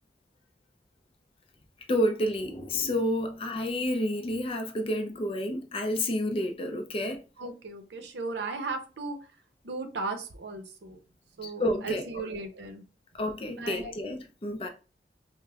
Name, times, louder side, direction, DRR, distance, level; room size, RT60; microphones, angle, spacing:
voice 1, 1.9-7.2 11.4-12.0 13.1-14.7, left 1 dB, 30° left, 0.4 m, -29 dB
voice 2, 7.4-9.2 9.6-11.0 11.4-12.8 13.6-13.9, right 3 dB, 80° right, 0.6 m, -36 dB
5.0 x 2.1 x 2.3 m
head